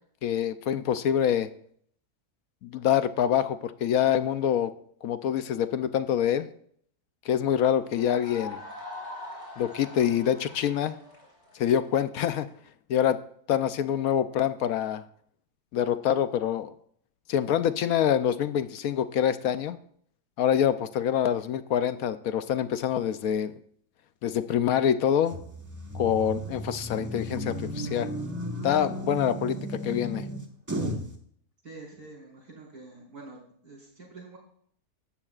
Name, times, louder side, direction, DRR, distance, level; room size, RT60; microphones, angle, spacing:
voice 1, 0.2-1.5 2.6-4.7 5.0-6.5 7.2-8.6 9.6-11.0 11.5-12.5 12.9-13.2 13.5-15.0 15.7-16.7 17.3-19.8 20.4-23.6 24.2-25.4 25.9-28.1 28.6-30.2, left 9 dB, 70° left, 11 dB, 1.0 m, -26 dB
sound 1, 7.8-12.5, left 2 dB, 30° left, 4.8 m, -43 dB
sound 2, 25.3-31.1, right 1 dB, 10° right, 1.3 m, -34 dB
voice 2, 31.6-33.4 33.6-34.4, right 3 dB, 75° right, -3 dB, 5.4 m, -46 dB
17.5 x 13.0 x 2.4 m, 0.64 s
omnidirectional pair, 1.6 m